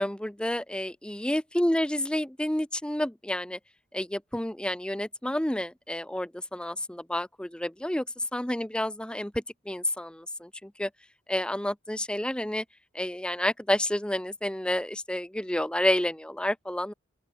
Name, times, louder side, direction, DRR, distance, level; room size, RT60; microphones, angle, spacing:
voice 1, 0.0-3.6 3.9-10.9 11.3-12.6 12.9-16.9, left 1 dB, 5° left, 0.6 m, -30 dB
open air
head